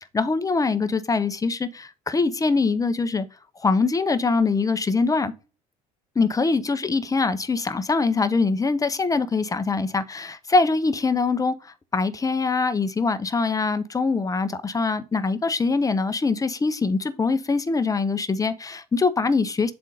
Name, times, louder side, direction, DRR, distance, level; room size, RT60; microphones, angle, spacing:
voice 1, 0.1-3.3 3.6-5.3 6.2-19.7, left 4 dB, 15° left, 0.6 m, -23 dB
7.4 x 2.6 x 5.0 m
hypercardioid pair, 65°, 21 cm